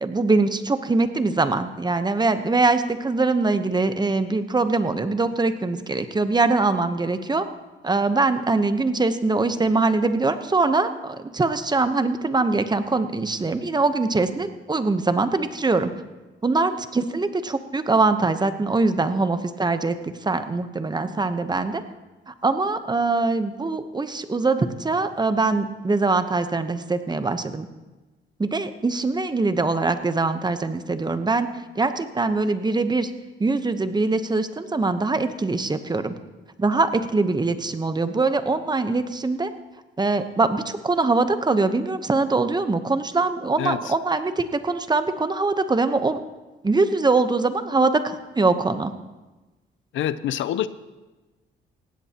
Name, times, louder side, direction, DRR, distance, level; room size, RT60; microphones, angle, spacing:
voice 1, 0.0-7.4 7.8-15.9 16.4-21.8 22.3-27.7 28.4-31.5 31.8-33.1 33.4-36.1 36.6-39.5 40.0-46.2 46.6-48.9, right 3 dB, 20° right, 10 dB, 1.0 m, -23 dB
voice 2, 43.6-43.9 49.9-50.7, left 11 dB, 75° left, 14 dB, 0.6 m, -26 dB
19.0 x 16.0 x 3.0 m, 1.2 s
cardioid pair, 90°, 20 cm